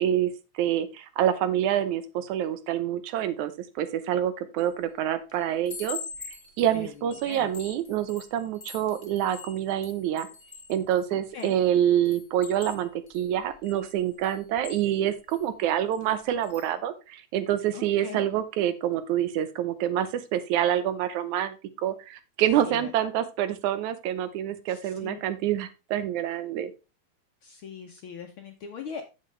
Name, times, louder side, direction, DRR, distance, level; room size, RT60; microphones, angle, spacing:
voice 1, 0.0-6.0 6.3-10.3 10.7-21.5 21.8-26.7, right 11 dB, 85° right, 12 dB, 2.3 m, -27 dB
Chime, 4.6-4.9 5.3-11.6 12.1-15.4 15.9-16.1 16.4-16.7, left 5 dB, 15° left, 1.3 m, -44 dB
voice 2, 6.7-7.5 11.3-11.5 17.7-18.3 22.6-22.9 24.7-25.2 27.4-29.0, left 6 dB, 65° left, 4 dB, 1.3 m, -40 dB
8.7 x 7.6 x 3.2 m, 0.29 s
omnidirectional pair, 3.3 m